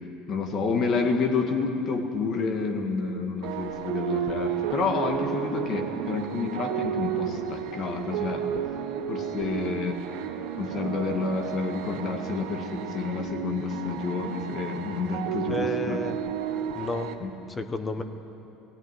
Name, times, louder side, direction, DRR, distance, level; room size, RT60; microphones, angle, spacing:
voice 1, 0.3-8.4 9.1-9.9 10.6-16.0 17.2-17.3, left 4 dB, 35° left, 5 dB, 1.8 m, -29 dB
sound 1, 3.4-17.1, right 9 dB, 75° right, 1.4 m, -32 dB
voice 2, 9.4-9.7 15.5-16.2 16.7-17.2 17.5-18.0, left 3 dB, 15° left, 9 dB, 0.9 m, -32 dB
17.0 x 16.5 x 9.6 m, 3.0 s
cardioid pair, 170°, 0 cm